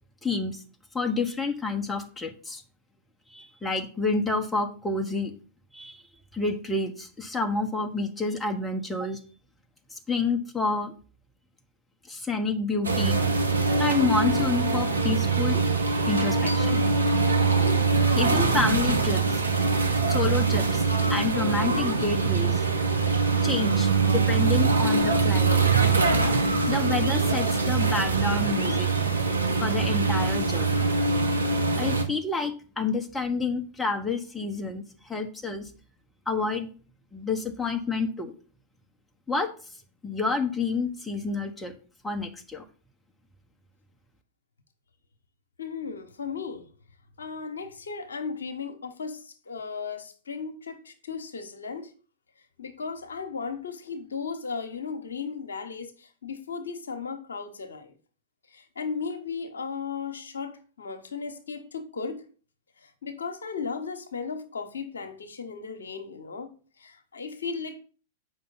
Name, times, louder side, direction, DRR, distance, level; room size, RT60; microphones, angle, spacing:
voice 1, 0.2-0.6 0.9-2.6 3.3-5.3 5.7-6.0 6.3-9.2 9.9-10.9 12.1-13.2 13.8-15.7 16.1-16.9 18.1-19.4 20.1-22.6 23.4-25.7 26.7-28.9 29.6-31.0 31.8-35.7 36.3-36.7 37.1-38.3 39.3-39.5 40.0-41.7 42.0-42.6, left 3 dB, 10° left, 1.3 m, -29 dB
sound 1, 12.8-32.0, right 4 dB, 90° right, 1.1 m, -23 dB
voice 2, 45.6-46.7 47.2-51.9 52.6-57.9 58.5-62.2 62.8-67.8, left 5 dB, 80° left, 1.1 m, -36 dB
8.0 x 5.5 x 4.0 m
figure-of-eight pair, 100°, 0 cm